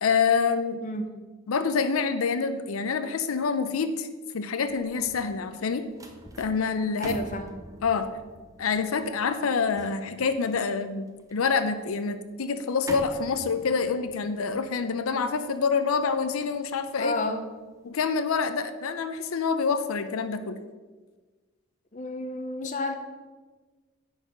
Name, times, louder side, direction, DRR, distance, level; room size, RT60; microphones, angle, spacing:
voice 1, 0.0-0.8 1.5-4.1 4.3-5.9 6.4-7.1 7.8-8.1 8.6-17.2 17.8-20.6, left 5 dB, 80° left, 10 dB, 0.5 m, -26 dB
sound 1, 4.5-17.8 18.2-18.4, right 1 dB, 15° right, 0.6 m, -46 dB
voice 2, 7.0-7.5 17.0-17.4 21.9-23.0, left 2 dB, 35° left, 6 dB, 0.6 m, -31 dB
9.9 x 4.1 x 5.0 m, 1.3 s
head